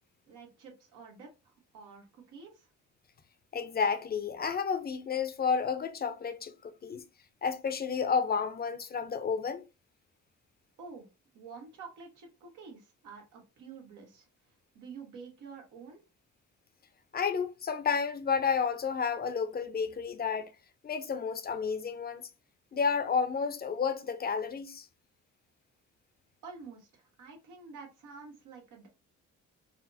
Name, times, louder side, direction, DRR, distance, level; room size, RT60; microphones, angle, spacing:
voice 1, 0.3-2.7 10.8-16.0 26.4-28.9, right 5 dB, 90° right, 1.4 m, -49 dB
voice 2, 3.5-7.0 7.4-9.6 17.1-20.5 20.8-22.3 22.7-24.9, left 6 dB, 30° left, 0.6 m, -31 dB
4.1 x 2.0 x 2.6 m
cardioid pair, 90°, 30 cm